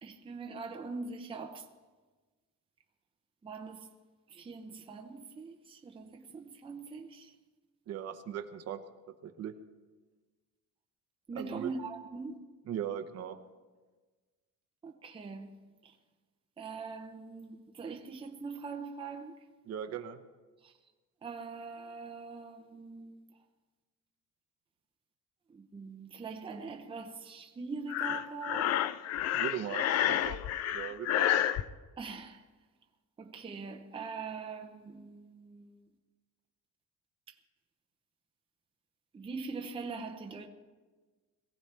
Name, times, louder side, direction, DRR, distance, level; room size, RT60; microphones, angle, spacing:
voice 1, 0.0-1.7 3.4-3.9 4.3-7.3 11.3-12.4 14.8-15.9 16.6-19.4 20.6-20.7 21.2-23.2 25.5-28.8 32.0-32.5 33.2-35.8 37.3-37.4 39.1-40.5, right 4 dB, 15° right, 0.7 m, -42 dB
voice 2, 7.9-8.8 9.1-9.5 11.3-11.7 12.7-13.4 19.7-20.2 29.3-30.4 30.7-31.3, right 9 dB, 50° right, 0.9 m, -38 dB
Breathing, 27.9-31.6, left 11 dB, 55° left, 0.5 m, -30 dB
22.0 x 16.0 x 3.4 m
cardioid pair, 175°, 32 cm